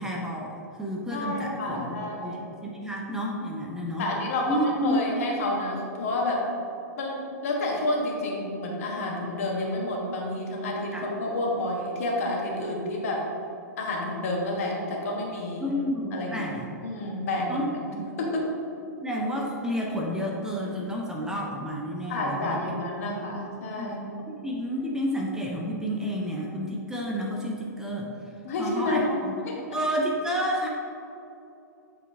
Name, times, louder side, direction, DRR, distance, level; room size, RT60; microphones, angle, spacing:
voice 1, 0.0-4.1 4.5-5.2 10.9-11.1 15.6-16.7 17.5-17.7 19.0-22.6 23.8-23.9 24.3-28.1 28.6-29.3 29.7-30.7, equal, 5° right, -2 dB, 0.6 m, -30 dB
voice 2, 1.1-2.4 4.0-6.5 7.0-13.2 13.8-15.8 16.1-16.5 16.8-18.5 22.1-24.1 28.4-29.6, left 2 dB, 55° left, -1 dB, 1.3 m, -29 dB
8.2 x 3.9 x 3.5 m, 2.8 s
figure-of-eight pair, 110°, 9 cm